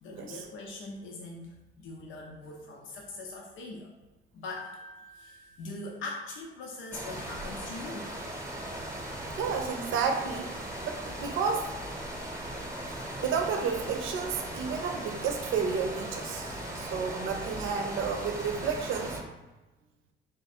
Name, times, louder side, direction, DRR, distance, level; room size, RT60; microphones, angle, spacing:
voice 1, 0.0-3.9 4.3-4.7 5.1-8.1, left 2 dB, 80° left, -1 dB, 0.6 m, -41 dB
Piano, 4.6-6.7, equal, 5° left, 0.4 m, -52 dB
sound 1, 6.9-19.2, right 1 dB, 15° right, 0.8 m, -38 dB
voice 2, 9.4-10.5 10.8-11.7 12.9-19.2, right 6 dB, 80° right, 5 dB, 0.6 m, -31 dB
3.7 x 2.5 x 4.1 m, 1.1 s
cardioid pair, 90°, 20 cm